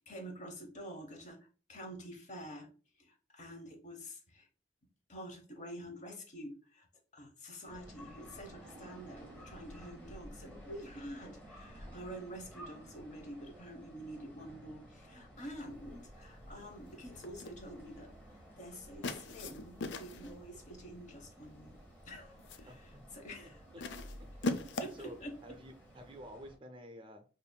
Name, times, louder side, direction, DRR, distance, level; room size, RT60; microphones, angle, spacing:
voice 1, 0.0-1.4 1.7-2.7 3.0-4.5 5.1-6.9 7.1-18.1 18.6-21.8 22.0-23.9 24.8-25.3, equal, 40° left, 3 dB, 0.8 m, -48 dB
sound 1, 7.7-26.6, equal, 10° left, 1.1 m, -54 dB
sound 2, 17.2-17.6 19.0-20.4 21.4-21.7 22.1-22.7 23.8-25.1, left 2 dB, 75° left, 0.4 m, -39 dB
voice 2, 22.7-23.0 24.4-24.5 24.8-27.2, equal, 30° right, 6 dB, 0.5 m, -51 dB
5.2 x 2.6 x 2.2 m, 0.37 s
head